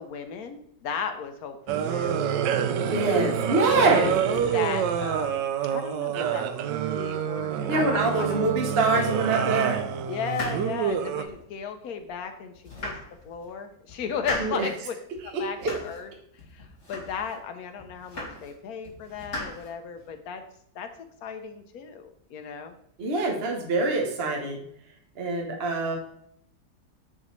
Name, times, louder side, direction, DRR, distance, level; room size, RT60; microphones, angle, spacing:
voice 1, 0.0-2.2 3.2-3.3 3.7-6.5 6.9-8.4 10.1-12.5 12.8-12.9 13.2-14.9 15.2-16.1 16.5-20.4 20.7-20.9 21.2-22.8, left 6 dB, 65° left, 7 dB, 1.1 m, -35 dB
sound 1, 1.7-11.2, right 8 dB, 90° right, 1.2 m, -27 dB
voice 2, 2.8-4.1 7.7-9.8 14.4-14.7 15.6-15.7 23.0-24.6 25.2-26.0, right 3 dB, 45° right, 1 dB, 0.9 m, -25 dB
sound 2, 10.2-11.5 12.0-12.1 12.5-13.5 13.9-14.7 15.1-16.1 16.4-17.4 17.8-18.6 18.8-20.1, left 1 dB, 40° left, 2.3 m, -38 dB
6.2 x 5.4 x 3.1 m, 0.69 s
omnidirectional pair, 1.8 m